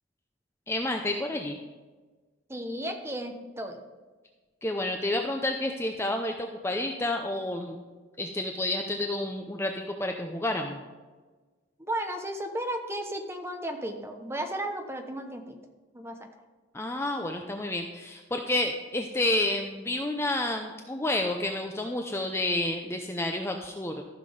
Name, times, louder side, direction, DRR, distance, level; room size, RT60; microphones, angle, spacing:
voice 1, 0.7-1.6 4.6-7.8 8.2-9.7 10.0-10.8 16.7-24.0, left 1 dB, 15° left, 3 dB, 0.5 m, -30 dB
voice 2, 2.5-3.8 11.8-15.6 15.9-16.2, right 1 dB, 10° right, 4 dB, 0.9 m, -34 dB
14.0 x 5.9 x 5.2 m, 1.3 s
head